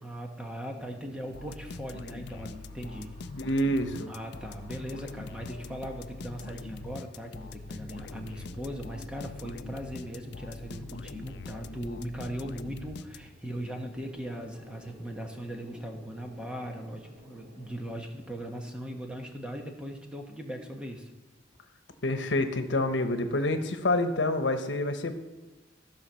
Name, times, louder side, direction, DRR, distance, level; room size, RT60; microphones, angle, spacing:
voice 1, 0.0-3.1 4.1-21.1, equal, 5° right, 2 dB, 1.2 m, -39 dB
sound 1, 0.8-18.3, equal, 60° right, 3.4 m, -54 dB
sound 2, 1.3-13.6, left 3 dB, 65° left, 0.4 m, -43 dB
voice 2, 3.3-4.1 22.0-25.1, left 1 dB, 90° left, 8 dB, 1.0 m, -27 dB
14.5 x 5.1 x 6.3 m, 1.2 s
head